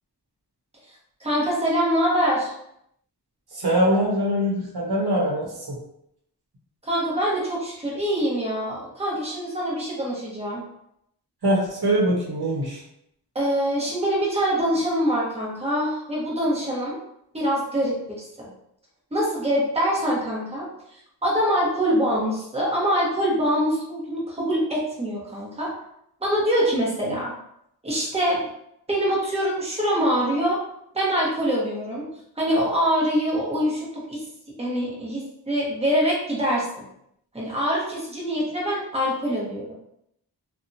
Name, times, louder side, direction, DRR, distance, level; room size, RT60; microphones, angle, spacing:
voice 1, 1.2-2.5 6.8-10.7 13.3-17.0 17.3-18.5 19.1-20.7 21.2-25.7 26.2-27.3 27.8-28.4 28.9-30.6 30.9-32.1 32.4-34.2 34.6-36.8 37.3-39.7, equal, 15° right, -5 dB, 0.9 m, -24 dB
voice 2, 3.5-5.7 11.4-12.8, equal, 70° right, -4 dB, 1.0 m, -23 dB
2.7 x 2.3 x 2.6 m, 0.76 s
wide cardioid pair, 55°, 40 cm